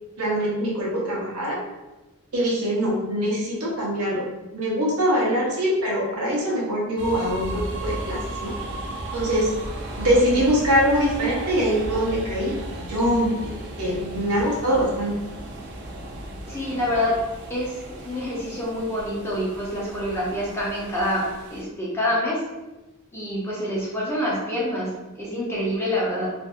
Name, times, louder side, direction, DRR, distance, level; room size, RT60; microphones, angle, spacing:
voice 1, 0.2-1.6 2.3-4.2 4.5-8.5 9.1-9.5 10.0-15.2, equal, 85° right, -4 dB, 0.9 m, -23 dB
sound 1, 7.0-21.6, right 1 dB, 50° right, 0.4 m, -35 dB
voice 2, 16.5-17.2 17.5-22.4 23.1-26.3, left 1 dB, 10° left, -6 dB, 0.6 m, -27 dB
2.6 x 2.5 x 2.4 m, 1.0 s
head